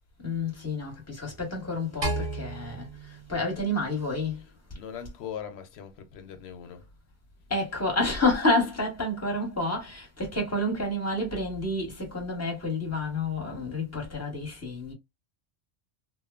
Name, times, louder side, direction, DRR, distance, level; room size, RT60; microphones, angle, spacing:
voice 1, 0.2-4.4 7.5-14.9, left 2 dB, 15° left, 1.0 m, -29 dB
sound 1, 2.0-4.4, right 2 dB, 35° right, 0.5 m, -34 dB
voice 2, 4.4-6.9, left 8 dB, 85° left, 0.8 m, -41 dB
3.0 x 2.0 x 2.3 m
omnidirectional pair, 1.1 m